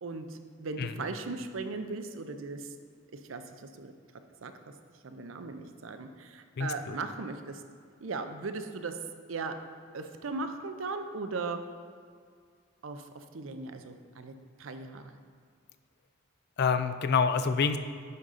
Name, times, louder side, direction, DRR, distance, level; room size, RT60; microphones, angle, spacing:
voice 1, 0.0-2.7 3.3-3.9 4.4-4.5 5.0-7.6 8.0-9.0 9.3-9.6 9.9-11.6 12.8-15.2, right 3 dB, 75° right, 8 dB, 0.6 m, -38 dB
voice 2, 6.6-7.0 16.6-17.8, left 5 dB, 55° left, 10 dB, 0.4 m, -27 dB
9.7 x 3.8 x 5.5 m, 2.1 s
head